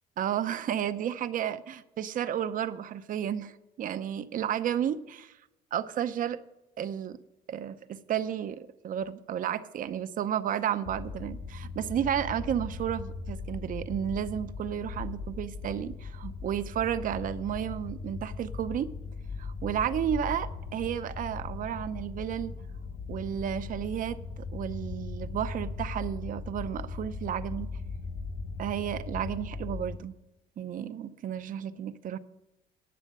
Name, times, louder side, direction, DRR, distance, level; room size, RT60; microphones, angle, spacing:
voice 1, 0.2-5.3 5.7-6.4 6.8-7.2 7.5-18.9 19.4-22.5 23.1-27.7 28.6-30.1 30.6-32.2, right 9 dB, 55° right, 12 dB, 0.7 m, -32 dB
sound 1, 10.8-30.0, left 4 dB, 65° left, 3.7 m, -39 dB
11.0 x 8.5 x 6.5 m, 0.94 s
cardioid pair, 110°, 17 cm